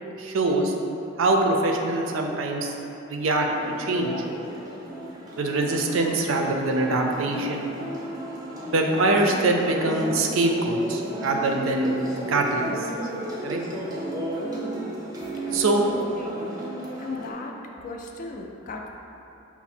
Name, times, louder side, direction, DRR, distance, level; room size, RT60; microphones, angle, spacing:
voice 1, 0.2-0.7 1.2-2.7 3.1-3.5 3.8-4.1 5.4-7.7 8.7-11.9 12.3-12.7 13.4-13.6 15.5-15.8, right 2 dB, 80° right, 2 dB, 0.5 m, -23 dB
sound 1, 3.5-17.3, right 1 dB, 20° right, 0.5 m, -34 dB
voice 2, 15.4-16.3 17.0-17.6 17.8-18.9, left 3 dB, 40° left, 1 dB, 0.3 m, -37 dB
5.8 x 2.0 x 4.2 m, 2.9 s
head